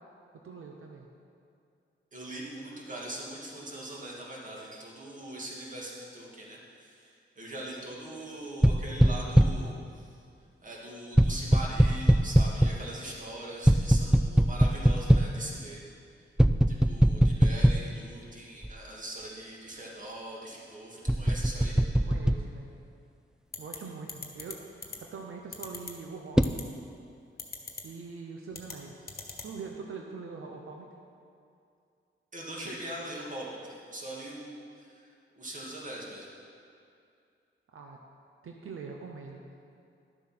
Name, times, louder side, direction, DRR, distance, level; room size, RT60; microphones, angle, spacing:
voice 1, 0.4-1.1 22.1-22.7 23.6-26.7 27.8-29.1 29.4-30.9 37.7-38.0 38.4-39.4, right 4 dB, 85° right, 1 dB, 0.9 m, -43 dB
voice 2, 2.1-10.2 10.6-15.8 16.7-21.8 32.3-36.3, right 1 dB, 40° right, -4 dB, 2.4 m, -41 dB
sound 1, 8.6-9.7 11.2-12.9 13.7-15.4 16.4-18.0 18.6-18.7 21.1-22.4 26.4-26.6, right 1 dB, 5° right, 0.3 m, -22 dB
sound 2, 23.5-23.8 24.1-24.5 24.8-25.0 25.5-25.9 26.4-26.6 27.4-27.8 28.5-28.7 29.1-29.5, left 5 dB, 45° left, 1.3 m, -39 dB
11.5 x 7.5 x 6.0 m, 2.5 s
wide cardioid pair, 115°, 21 cm